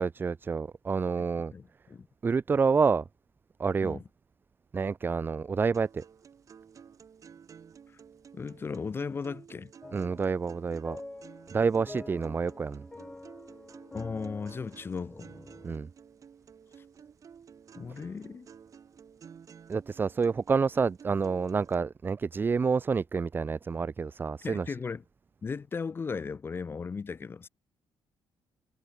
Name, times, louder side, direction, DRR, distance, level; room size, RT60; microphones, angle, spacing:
voice 1, 0.0-1.5 2.2-3.0 3.6-4.0 4.7-6.0 9.9-11.0 11.5-12.8 15.6-15.9 19.7-24.7, right 5 dB, 25° right, 0.5 m, -28 dB
voice 2, 1.2-2.1 3.8-4.0 8.3-9.7 13.9-15.3 17.8-18.5 24.4-25.0 25.4-27.5, left 5 dB, 25° left, 0.6 m, -36 dB
sound 1, 5.7-21.8, right 7 dB, 40° right, 1.8 m, -53 dB
sound 2, 9.8-15.7, left 2 dB, 10° left, 3.7 m, -47 dB
cardioid pair, 125°, 9 cm